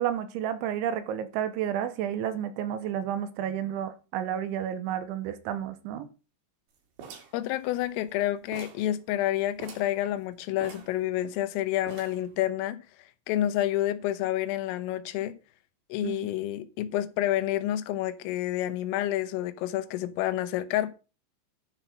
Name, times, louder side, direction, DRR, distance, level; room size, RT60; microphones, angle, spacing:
voice 1, 0.0-6.1 16.0-16.2, right 10 dB, 80° right, 3.1 m, -31 dB
sound 1, 7.0-8.2 8.5-8.9 9.2-9.3 9.6-10.0 10.6-11.5 11.9-12.3, right 6 dB, 55° right, 4.2 m, -45 dB
voice 2, 7.3-12.8 13.3-15.3 15.9-20.9, left 13 dB, 90° left, 3.6 m, -29 dB
11.0 x 6.0 x 5.7 m
omnidirectional pair, 5.7 m